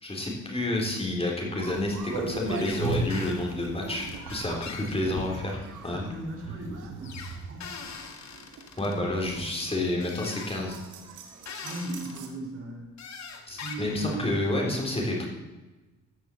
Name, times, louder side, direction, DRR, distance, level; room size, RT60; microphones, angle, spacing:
voice 1, 0.0-6.0 8.8-10.8 13.5-15.3, left 1 dB, 20° left, -1 dB, 3.5 m, -29 dB
sound 1, 1.6-12.3, right 4 dB, 80° right, 1.8 m, -39 dB
sound 2, 2.5-2.8 3.1-3.4 4.3-5.7 7.0-9.0 10.0-10.6 11.5-12.2 13.0-14.1, left 5 dB, 65° left, 2.0 m, -41 dB
voice 2, 5.9-8.1 8.7-9.3 11.6-12.9 13.5-14.3, right 2 dB, 45° right, 1 dB, 3.8 m, -38 dB
14.0 x 6.9 x 7.6 m, 1.1 s
cardioid pair, 90°, 30 cm